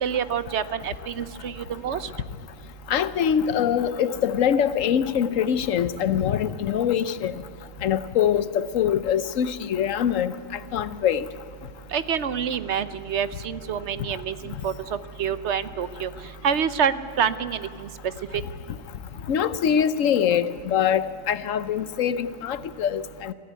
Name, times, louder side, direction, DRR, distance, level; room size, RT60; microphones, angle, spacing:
voice 1, 0.0-2.1 11.9-17.9 18.3-18.4, right 7 dB, 65° right, 1.0 m, -27 dB
voice 2, 2.9-7.3 7.8-10.3 10.7-11.2 19.3-23.3, left 8 dB, 80° left, 1.1 m, -23 dB
23.0 x 15.5 x 9.4 m
omnidirectional pair, 1.3 m